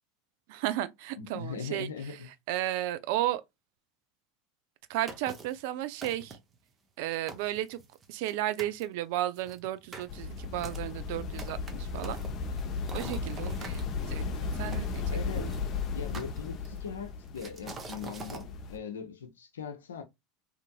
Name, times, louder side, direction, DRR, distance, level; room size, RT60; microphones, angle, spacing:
voice 1, 0.5-1.9 2.5-3.4 4.9-6.4 7.0-7.8 8.1-12.2 12.9-15.5, right 14 dB, 65° right, 0.4 m, -34 dB
voice 2, 1.2-2.3 13.0-13.2 15.1-15.5 15.9-20.0, left 6 dB, 85° left, 0.6 m, -40 dB
sound 1, 5.1-5.6 6.0-6.6 7.0-7.1 7.3-8.3 8.6-8.8 9.4-13.8 14.7-15.6 16.1-16.9 17.4-18.5, right 3 dB, 30° right, 0.7 m, -45 dB
sound 2, 10.1-18.8, left 4 dB, 45° left, 0.6 m, -35 dB
2.8 x 2.6 x 2.2 m
hypercardioid pair, 85°, 0 cm